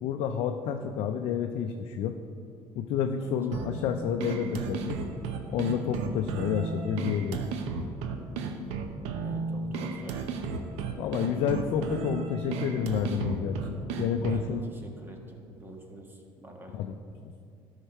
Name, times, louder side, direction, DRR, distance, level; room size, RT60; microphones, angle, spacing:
voice 1, 0.0-2.2 2.8-5.0 5.5-7.4 11.0-14.6 16.7-17.0, left 7 dB, 70° left, 5 dB, 0.5 m, -30 dB
sound 1, 3.5-14.5, right 5 dB, 80° right, 0.7 m, -34 dB
voice 2, 9.2-10.3 14.2-16.7, right 1 dB, 20° right, 2 dB, 1.4 m, -47 dB
12.0 x 5.7 x 4.4 m, 2.4 s
cardioid pair, 100°, 10 cm